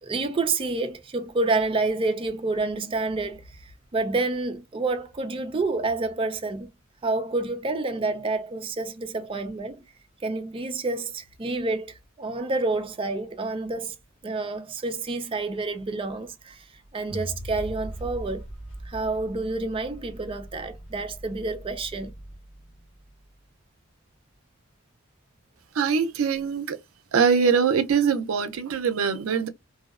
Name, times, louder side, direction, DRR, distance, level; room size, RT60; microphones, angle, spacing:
voice 1, 0.0-6.7 7.0-9.8 10.2-14.0 14.2-16.7 16.9-18.5 18.8-22.1, right 3 dB, 25° right, 0.4 m, -28 dB
sound 1, 17.1-23.3, right 1 dB, 65° left, 1.6 m, -40 dB
voice 2, 25.7-26.8 27.1-29.5, right 6 dB, 80° right, 0.5 m, -23 dB
2.6 x 2.0 x 2.4 m
head